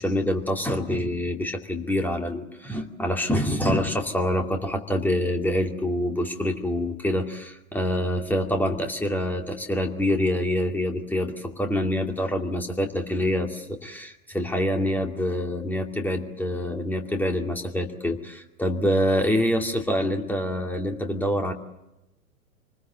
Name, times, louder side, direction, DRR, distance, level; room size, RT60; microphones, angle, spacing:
voice 1, 0.0-21.5, left 1 dB, 5° left, 3 dB, 2.4 m, -26 dB
27.0 x 20.5 x 8.0 m, 0.93 s
figure-of-eight pair, 105°, 42 cm